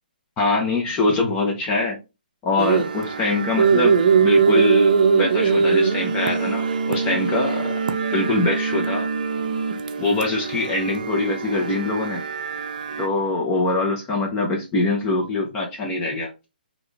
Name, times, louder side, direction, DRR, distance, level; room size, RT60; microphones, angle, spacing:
voice 1, 0.4-2.0 2.4-7.7 8.1-9.1 10.0-12.2 13.0-16.3, left 2 dB, 20° left, 0.8 m, -23 dB
sound 1, 2.6-13.1, right 5 dB, 55° right, 0.5 m, -21 dB
3.6 x 2.4 x 3.4 m
hypercardioid pair, 145°, 5 cm